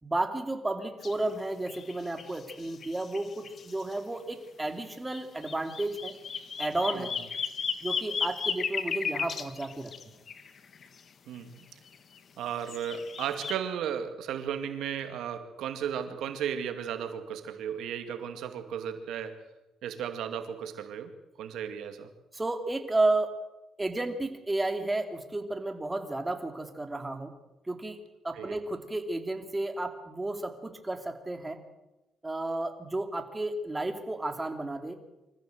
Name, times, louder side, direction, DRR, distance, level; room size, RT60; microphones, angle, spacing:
voice 1, 0.0-6.1 6.6-7.1 7.8-9.9 22.3-23.3 23.8-27.3 27.7-28.0 28.2-31.6 32.2-35.0, right 2 dB, 15° right, 6 dB, 2.7 m, -32 dB
sound 1, 1.0-1.2 1.7-3.9 5.1-11.0 11.9-13.5, left 6 dB, 50° left, 1.5 m, -35 dB
voice 2, 11.3-11.7 12.4-19.4 19.8-21.1 21.4-22.1 28.3-28.6, right 8 dB, 80° right, 8 dB, 2.4 m, -35 dB
25.0 x 14.5 x 7.9 m, 1.0 s
cardioid pair, 90°, 0 cm